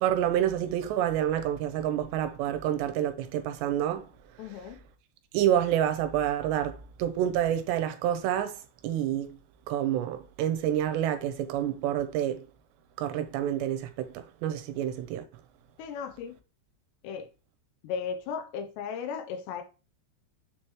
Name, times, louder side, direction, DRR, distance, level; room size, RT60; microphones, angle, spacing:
voice 1, 0.0-4.1 5.3-8.5 8.8-9.3 9.7-12.4 13.0-15.2, right 11 dB, 90° right, 2.9 m, -28 dB
voice 2, 4.4-4.8 15.8-16.4 17.0-17.3 17.8-19.6, left 6 dB, 90° left, 2.8 m, -36 dB
7.0 x 4.4 x 3.1 m
omnidirectional pair, 5.0 m